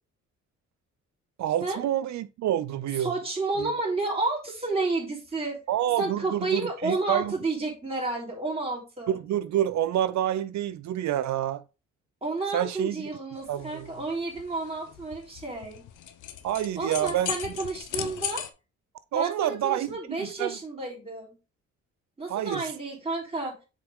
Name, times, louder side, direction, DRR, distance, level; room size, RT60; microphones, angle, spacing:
voice 1, 1.4-3.1 3.6-3.7 5.7-7.4 9.1-11.6 12.5-13.1 13.5-13.9 16.4-17.5 19.1-20.6 22.3-22.6, right 11 dB, 65° right, 0.6 m, -28 dB
voice 2, 3.0-5.6 6.0-9.2 12.2-15.8 16.8-18.4 19.1-21.4 22.2-23.6, right 3 dB, 20° right, 3.8 m, -31 dB
sound 1, 13.4-18.5, left 11 dB, 80° left, 0.9 m, -38 dB
6.7 x 5.0 x 3.7 m
cardioid pair, 90°, 30 cm